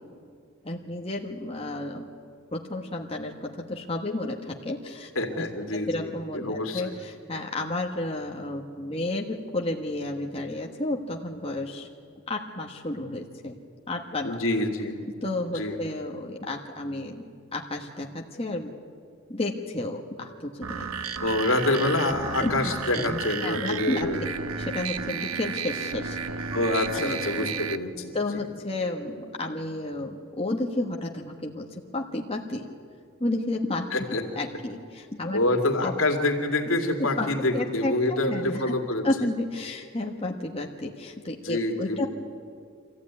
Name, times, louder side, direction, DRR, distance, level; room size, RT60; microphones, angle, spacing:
voice 1, 0.6-2.1 2.5-5.5 5.9-11.9 12.3-13.6 13.9-14.4 15.2-18.7 19.3-21.1 22.4-22.5 22.9-26.2 26.9-27.5 28.1-31.7 31.9-32.7 33.2-35.4 35.8-35.9 37.0-37.3 37.5-42.1, left 2 dB, 25° left, 1 dB, 1.3 m, -32 dB
voice 2, 5.2-6.9 14.2-14.9 15.5-15.8 21.2-24.2 26.5-28.4 33.9-34.2 35.3-39.1 41.4-42.1, left 2 dB, 75° left, 3 dB, 2.5 m, -26 dB
sound 1, 20.6-27.8, right 6 dB, 90° right, 0.9 m, -33 dB
24.5 x 15.0 x 9.6 m, 2.3 s
head